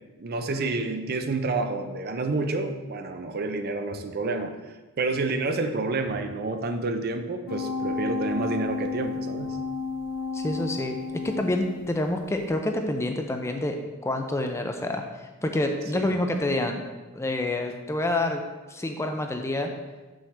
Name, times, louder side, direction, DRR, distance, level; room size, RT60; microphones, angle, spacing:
voice 1, 0.2-4.5 5.0-9.6 15.9-16.1, right 3 dB, 45° right, 7 dB, 0.5 m, -29 dB
sound 1, 7.5-12.0 12.4-12.5, left 4 dB, 90° left, 0.7 m, -31 dB
voice 2, 10.3-16.9 17.1-18.4 18.7-19.7, left 1 dB, 10° left, 4 dB, 0.4 m, -28 dB
6.3 x 6.3 x 3.3 m, 1.2 s
head